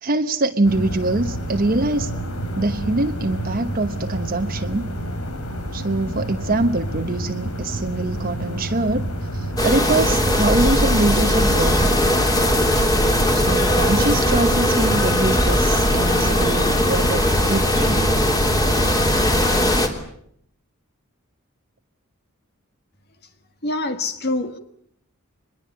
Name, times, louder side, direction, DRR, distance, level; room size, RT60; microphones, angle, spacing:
voice 1, 0.0-2.1 2.6-4.9 5.7-9.1 9.3-12.0 13.3-18.1, right 2 dB, 45° right, 7 dB, 1.1 m, -23 dB
sound 1, 0.6-19.7, equal, 90° left, 4.2 m, -29 dB
sound 2, 9.6-19.9, equal, 20° left, 3.2 m, -19 dB
voice 2, 23.6-24.6, left 2 dB, 50° left, 8 dB, 1.7 m, -25 dB
24.0 x 21.5 x 8.6 m, 0.70 s
head